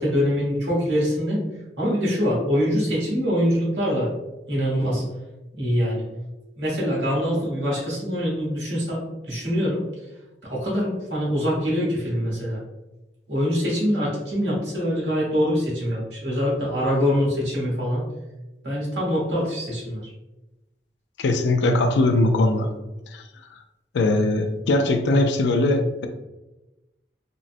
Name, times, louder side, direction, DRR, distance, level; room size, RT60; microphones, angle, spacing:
voice 1, 0.0-1.4 1.8-4.1 4.5-5.0 5.5-6.0 6.6-9.8 10.4-12.6 13.3-18.0 18.6-20.0, equal, 90° right, -5 dB, 1.3 m, -24 dB
voice 2, 21.2-22.7 23.1-23.2 23.9-26.1, left 2 dB, 90° left, 6 dB, 0.4 m, -20 dB
3.8 x 2.1 x 2.5 m, 1.0 s
head